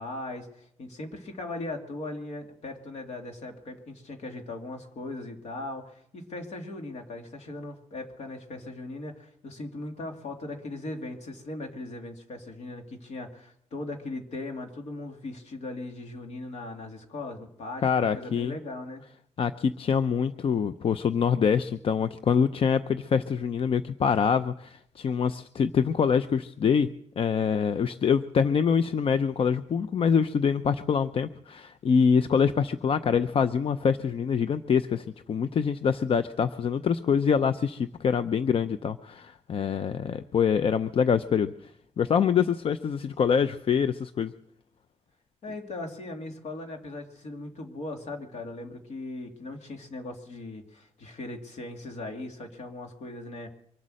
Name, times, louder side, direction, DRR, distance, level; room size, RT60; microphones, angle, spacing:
voice 1, 0.0-19.0 45.4-53.5, left 2 dB, 75° left, 3 dB, 2.7 m, -39 dB
voice 2, 17.8-18.6 19.4-26.9 27.2-41.5 42.0-44.3, left 6 dB, 55° left, 12 dB, 0.5 m, -25 dB
24.5 x 8.3 x 6.4 m, 0.72 s
wide cardioid pair, 120°, 11 cm